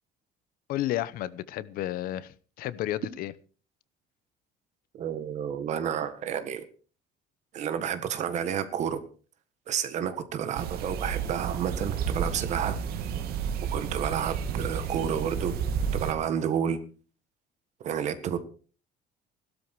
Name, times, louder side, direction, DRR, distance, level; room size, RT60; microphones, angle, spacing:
voice 1, 0.7-3.3, left 14 dB, 60° left, 18 dB, 0.8 m, -32 dB
voice 2, 4.9-6.6 7.5-9.0 9.7-12.8 13.7-15.6 15.9-16.8 17.8-18.4, right 8 dB, 45° right, 11 dB, 1.7 m, -30 dB
sound 1, 10.5-16.1, right 7 dB, 65° right, 2.1 m, -31 dB
16.5 x 12.5 x 4.7 m, 0.39 s
cardioid pair, 180°, 17 cm